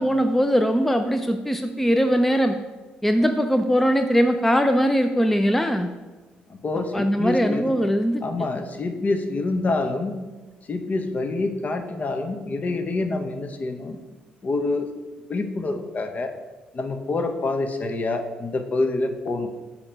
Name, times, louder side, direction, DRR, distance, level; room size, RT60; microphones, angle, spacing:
voice 1, 0.0-2.6 3.0-5.9 6.9-8.2, equal, 5° left, 7 dB, 0.4 m, -21 dB
voice 2, 6.5-7.7 8.2-10.1 10.7-14.0 14.4-14.9 15.3-16.3 16.7-19.5, left 3 dB, 40° left, 6 dB, 0.9 m, -26 dB
8.5 x 3.0 x 5.2 m, 1.2 s
supercardioid pair, 65°, 4 cm